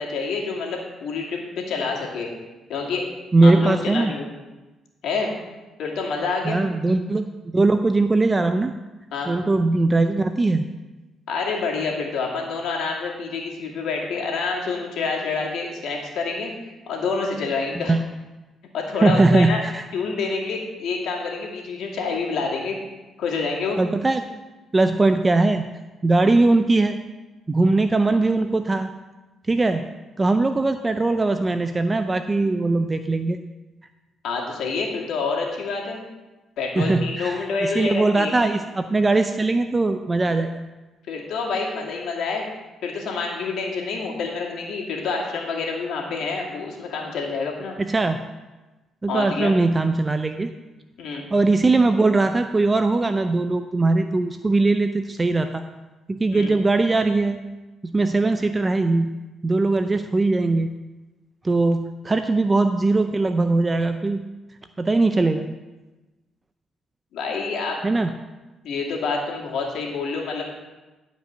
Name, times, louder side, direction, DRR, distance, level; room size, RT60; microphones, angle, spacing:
voice 1, 0.0-2.3 2.7-3.1 3.4-4.3 5.0-5.3 5.8-6.6 9.1-9.3 11.3-16.5 16.9-18.0 18.7-19.6 19.9-22.8 23.2-23.8 34.2-36.0 36.6-38.3 41.1-42.5 42.8-47.8 49.1-49.6 51.0-51.3 56.3-56.5 67.1-67.8 68.6-70.5, left 4 dB, 75° left, -2 dB, 2.4 m, -27 dB
voice 2, 3.3-4.1 6.4-8.7 9.3-10.7 17.8-18.0 19.0-19.8 23.8-24.4 24.7-25.7 26.0-27.0 27.5-28.9 29.5-29.9 30.2-33.4 36.8-40.6 47.8-48.2 49.0-50.5 51.3-55.7 56.1-57.5 57.8-59.1 59.4-60.7 61.4-64.3 64.8-65.5 67.8-68.1, right 2 dB, 25° right, 8 dB, 0.5 m, -20 dB
12.0 x 5.3 x 6.2 m, 1.1 s
cardioid pair, 90°, 0 cm